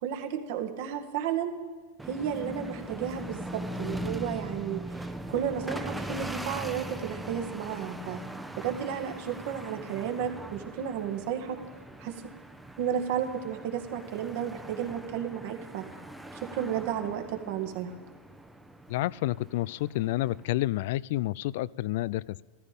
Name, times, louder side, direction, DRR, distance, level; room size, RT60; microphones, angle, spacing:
voice 1, 0.0-1.5 2.1-5.0 5.3-8.2 8.6-11.6 12.0-12.2 12.8-15.9 16.3-17.9, right 9 dB, 65° right, 5 dB, 1.9 m, -33 dB
sound 1, 2.0-20.6, right 1 dB, 5° right, 0.9 m, -41 dB
voice 2, 18.9-22.4, left 16 dB, 65° left, 22 dB, 0.3 m, -29 dB
14.0 x 14.0 x 5.2 m, 1.5 s
hypercardioid pair, 115°, 0 cm